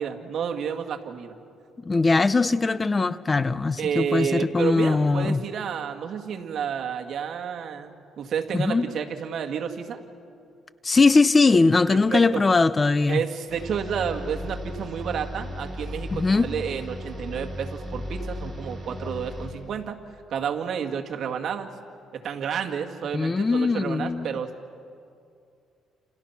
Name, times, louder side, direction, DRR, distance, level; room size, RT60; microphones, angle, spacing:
voice 1, 0.0-1.4 3.8-10.0 11.9-12.4 13.1-20.0 20.3-21.7 22.1-24.5, right 7 dB, 55° right, 3 dB, 2.1 m, -30 dB
voice 2, 1.8-5.4 8.5-8.9 10.8-13.2 16.1-16.5 23.1-24.3, left 3 dB, 20° left, 15 dB, 0.6 m, -21 dB
sound 1, 13.5-19.8, left 1 dB, 15° right, 7.1 m, -36 dB
29.0 x 29.0 x 5.9 m, 2.4 s
cardioid pair, 125°, 0 cm